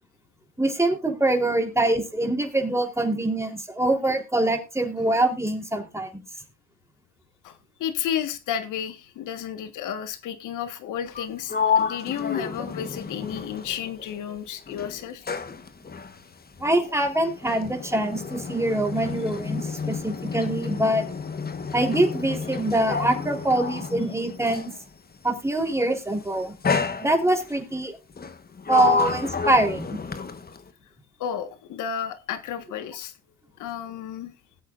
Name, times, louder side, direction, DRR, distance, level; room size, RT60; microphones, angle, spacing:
voice 1, 0.6-6.2 12.6-12.7 16.6-21.0 21.7-24.7 25.2-26.5 27.0-27.9 28.7-30.0, right 1 dB, 10° right, 3 dB, 3.7 m, -24 dB
voice 2, 7.4-15.2 31.2-33.1 33.6-34.3, left 9 dB, 85° left, 9 dB, 1.6 m, -32 dB
Sliding door, 11.1-14.4 14.7-24.8 25.7-26.0 26.6-27.6 28.2-30.7, left 5 dB, 30° left, 1.3 m, -30 dB
20.0 x 8.4 x 2.5 m, 0.28 s
cardioid pair, 90°, 30 cm